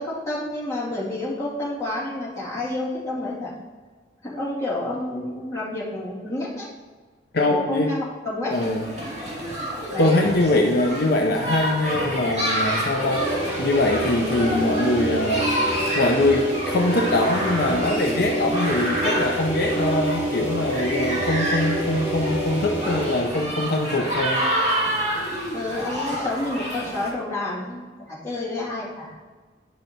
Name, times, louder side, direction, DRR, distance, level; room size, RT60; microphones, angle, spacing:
voice 1, 0.0-3.5 4.2-6.7 7.4-8.5 9.9-10.1 25.5-29.1, left 2 dB, 20° left, -9 dB, 2.2 m, -29 dB
voice 2, 7.3-7.9 8.5-8.9 10.0-24.5, left 2 dB, 60° left, 2 dB, 0.6 m, -23 dB
sound 1, 8.5-27.1, right 1 dB, 40° right, 2.3 m, -28 dB
sound 2, 12.9-23.4, right 1 dB, 10° right, 1.9 m, -28 dB
10.5 x 5.5 x 2.8 m, 1.4 s
head